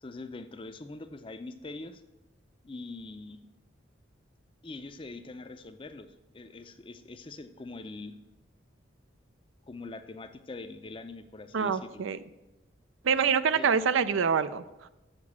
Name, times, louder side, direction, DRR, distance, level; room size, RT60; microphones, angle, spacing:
voice 1, 0.0-2.0 2.6-3.4 4.6-8.2 9.7-12.0 13.5-13.7, left 3 dB, 25° left, 10 dB, 0.5 m, -43 dB
voice 2, 11.5-12.2 13.0-14.6, right 6 dB, 85° right, 14 dB, 0.5 m, -25 dB
7.0 x 6.7 x 7.2 m, 1.0 s
head